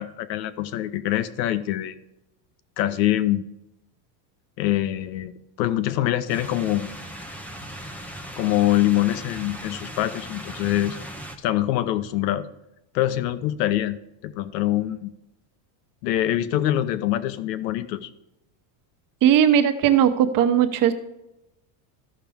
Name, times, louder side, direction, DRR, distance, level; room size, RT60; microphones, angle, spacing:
voice 1, 0.0-1.9 2.8-3.4 4.6-5.3 5.6-6.9 8.4-11.0 11.4-12.5 12.9-14.0 14.2-15.1 16.0-18.1, left 13 dB, 80° left, 13 dB, 0.9 m, -24 dB
sound 1, 6.3-11.4, equal, 5° left, 0.4 m, -38 dB
voice 2, 19.2-20.9, right 9 dB, 40° right, 7 dB, 1.0 m, -18 dB
14.0 x 5.8 x 3.6 m, 0.90 s
supercardioid pair, 140°, 50 cm